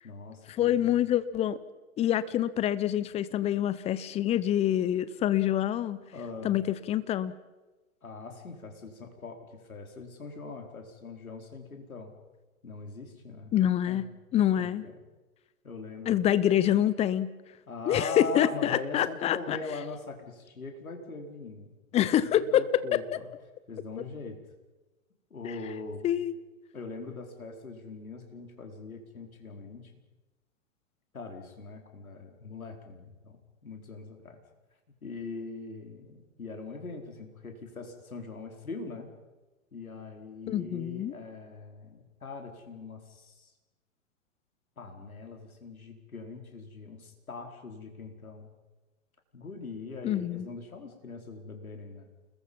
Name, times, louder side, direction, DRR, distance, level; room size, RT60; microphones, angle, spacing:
voice 1, 0.0-1.0 6.1-6.5 8.0-12.1 12.6-14.0 14.6-14.9 15.6-16.4 17.7-21.8 22.0-23.3 23.7-24.4 25.3-26.1 26.7-29.9 31.1-34.4 35.0-39.1 39.7-43.5 44.8-48.5 49.3-52.1, left 3 dB, 80° left, 4 dB, 4.5 m, -42 dB
voice 2, 0.6-1.6 2.0-6.0 6.4-7.3 13.5-14.8 16.1-17.3 17.9-19.6 21.9-23.0 26.0-26.3 40.5-41.1 50.0-50.5, left 11 dB, 15° left, 17 dB, 0.7 m, -26 dB
29.5 x 21.5 x 5.5 m, 1.2 s
figure-of-eight pair, 115°, 42 cm